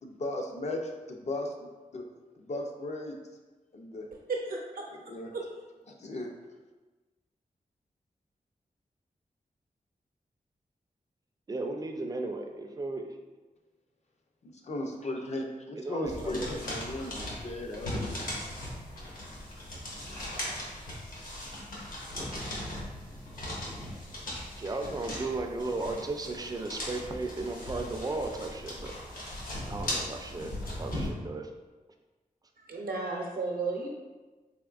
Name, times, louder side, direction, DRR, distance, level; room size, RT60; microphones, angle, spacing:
voice 1, 0.0-2.0 2.4-3.2 3.7-4.1 4.9-5.3 6.0-6.3 14.4-18.2, left 1 dB, 50° left, 1 dB, 0.5 m, -36 dB
voice 2, 4.3-4.8 5.3-5.4 32.6-33.9, right 3 dB, 85° right, -1 dB, 0.6 m, -33 dB
voice 3, 11.5-13.1 15.8-16.5 24.6-29.0 29.7-31.5, right 2 dB, 25° right, 3 dB, 0.4 m, -35 dB
sound 1, 16.0-31.1, left 1 dB, 70° left, 1.2 m, -38 dB
3.7 x 3.5 x 2.3 m, 1.2 s
wide cardioid pair, 130°, 15 cm